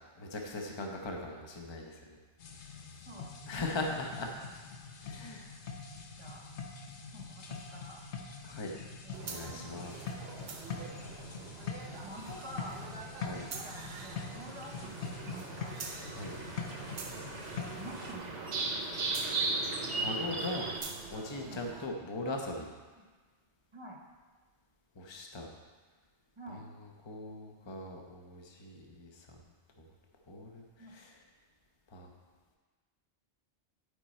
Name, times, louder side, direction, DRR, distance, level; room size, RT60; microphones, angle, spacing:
voice 1, 0.2-2.2 3.5-4.3 5.0-5.5 8.4-8.7 9.2-10.0 13.2-13.4 16.0-16.4 19.8-20.7 21.1-22.7 25.0-25.5 26.5-26.6 27.0-29.4 30.3-31.1 31.9-32.1, left 2 dB, 25° left, 1 dB, 0.8 m, -40 dB
sound 1, 2.4-18.1, left 5 dB, 70° left, 1.1 m, -44 dB
voice 2, 6.2-6.5 7.1-8.0 9.0-9.7 12.0-12.8 13.2-15.7 17.8-18.5 21.4-21.6 23.0-23.1 23.7-24.0 26.4-26.6 30.8-30.9, right 1 dB, 25° right, 0 dB, 1.0 m, -49 dB
sound 2, 9.1-21.9, right 4 dB, 65° right, 1.0 m, -46 dB
sound 3, 13.9-20.8, right 3 dB, 85° right, 1.3 m, -37 dB
11.0 x 5.1 x 4.3 m, 1.4 s
omnidirectional pair, 1.2 m